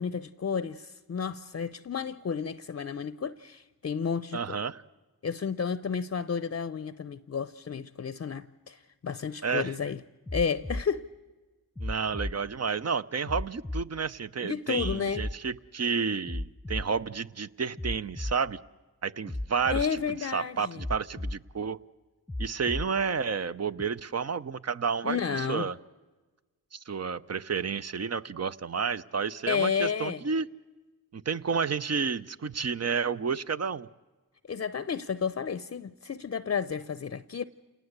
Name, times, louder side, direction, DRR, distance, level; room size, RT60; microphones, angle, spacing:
voice 1, 0.0-4.6 5.2-10.0 10.3-11.1 14.4-15.3 19.7-20.8 25.0-25.7 29.5-30.2 34.5-37.4, left 6 dB, 40° left, 0.7 m, -32 dB
voice 2, 4.3-4.8 9.4-9.7 11.8-18.6 19.0-21.8 22.4-25.7 26.7-30.5 31.1-33.9, right 5 dB, 45° right, 0.8 m, -31 dB
sound 1, 10.3-10.8 11.8-12.3 13.3-13.8 14.8-15.4 16.3-16.9 17.8-18.4 19.3-19.9 20.8-21.4 22.3-22.9 23.8-23.9, left 1 dB, ahead, 1.0 m, -34 dB
28.0 x 18.5 x 8.1 m
cardioid pair, 50°, 36 cm